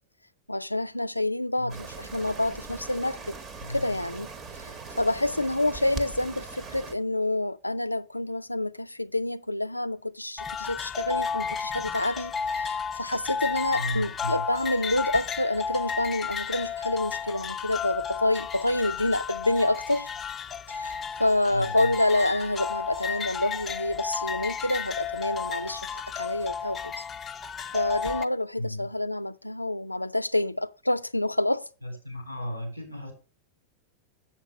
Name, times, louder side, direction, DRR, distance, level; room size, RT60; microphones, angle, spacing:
voice 1, 0.5-3.4 3.7-4.3 4.5-4.7 5.0-20.1 20.7-26.9 27.7-31.7, left 1 dB, 85° left, 0.3 m, -28 dB
sound 1, 1.7-6.9, right 4 dB, 30° right, 1.0 m, -40 dB
voice 2, 3.6-4.1 13.7-14.4 21.5-21.9 28.6-28.9 31.8-33.1, equal, 90° right, 3.4 m, -35 dB
sound 2, 10.4-28.2, left 6 dB, 20° left, 0.5 m, -33 dB
7.3 x 7.2 x 5.1 m
figure-of-eight pair, 90°, 0 cm